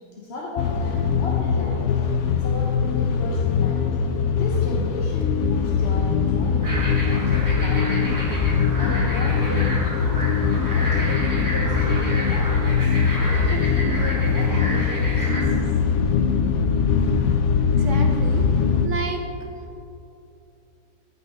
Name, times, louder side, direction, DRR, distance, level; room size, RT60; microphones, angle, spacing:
voice 1, 0.0-10.1 10.4-15.7, left 2 dB, 45° left, -4 dB, 1.1 m, -35 dB
sound 1, 0.6-18.9, left 6 dB, 85° left, 0.6 m, -21 dB
sound 2, 6.6-15.4, right 1 dB, 10° right, 1.4 m, -31 dB
voice 2, 17.7-19.3 19.5-19.8, right 3 dB, 60° right, 3 dB, 0.8 m, -32 dB
14.5 x 5.6 x 3.7 m, 2.8 s
omnidirectional pair, 1.8 m